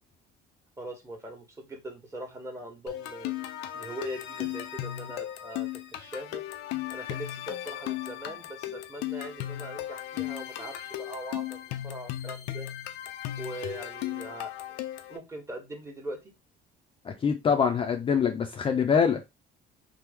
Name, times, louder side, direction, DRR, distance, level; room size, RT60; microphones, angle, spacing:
voice 1, 0.8-3.3 3.7-6.4 6.9-12.7 13.4-14.5 15.1-16.2, right 1 dB, 15° right, 1.1 m, -41 dB
sound 1, 2.9-15.2, left 13 dB, 90° left, 0.4 m, -36 dB
voice 2, 17.0-19.2, left 6 dB, 30° left, 0.5 m, -24 dB
3.0 x 2.0 x 3.5 m
cardioid pair, 110°, 17 cm